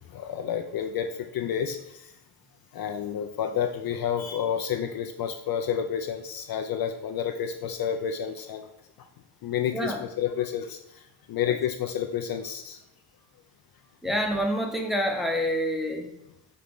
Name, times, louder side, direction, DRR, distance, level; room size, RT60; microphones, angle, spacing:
voice 1, 0.1-2.1 2.7-8.7 9.4-10.8 11.3-12.8, left 8 dB, 55° left, 5 dB, 0.5 m, -30 dB
voice 2, 9.7-10.1 11.5-11.6 14.0-16.1, equal, ahead, 1 dB, 0.8 m, -27 dB
5.1 x 2.9 x 3.5 m, 0.82 s
cardioid pair, 70°, 45 cm